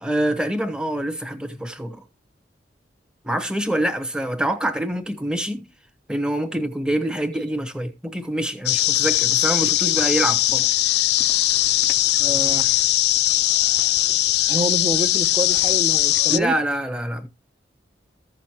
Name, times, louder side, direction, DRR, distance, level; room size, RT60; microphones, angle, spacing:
voice 1, 0.0-2.0 3.2-5.6 6.1-10.6 16.3-17.3, right 1 dB, 5° right, 1.0 m, -25 dB
sound 1, 8.7-16.4, left 14 dB, 65° left, 0.5 m, -20 dB
voice 2, 12.2-12.7 14.5-16.5, right 1 dB, 25° right, 0.6 m, -27 dB
14.5 x 6.3 x 2.9 m
head